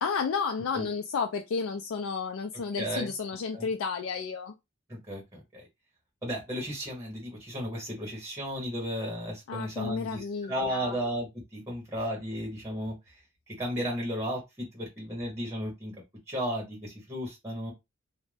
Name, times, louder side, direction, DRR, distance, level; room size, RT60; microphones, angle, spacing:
voice 1, 0.0-4.5 9.5-10.9, left 5 dB, 75° left, 0.4 m, -32 dB
voice 2, 2.8-3.1 3.5-3.7 4.9-5.6 6.2-15.9 16.3-17.7, equal, 15° right, 0.9 m, -34 dB
2.5 x 2.1 x 3.2 m
head